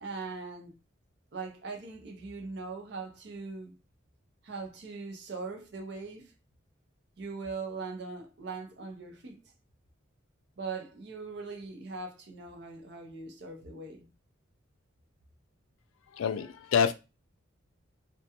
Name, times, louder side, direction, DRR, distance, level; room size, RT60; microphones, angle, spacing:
voice 1, 0.0-0.8 1.3-3.8 4.4-6.3 7.2-9.4 10.6-14.1, right 4 dB, 55° right, 0.6 m, -40 dB
voice 2, 16.1-16.9, left 7 dB, 85° left, 0.3 m, -27 dB
2.3 x 2.2 x 2.8 m
head